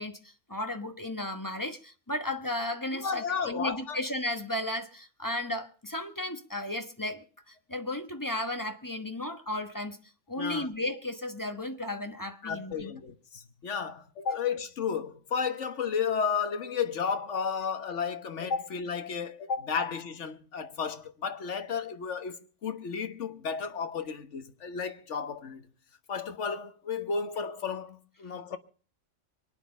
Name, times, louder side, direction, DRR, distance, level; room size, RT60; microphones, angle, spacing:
voice 1, 0.0-10.0 10.3-12.9 14.3-14.4, left 1 dB, 15° left, 1.1 m, -34 dB
voice 2, 2.9-4.0 10.4-10.7 12.4-25.6 26.1-28.6, left 6 dB, 60° left, 1.5 m, -33 dB
24.0 x 9.4 x 5.4 m
omnidirectional pair, 1.4 m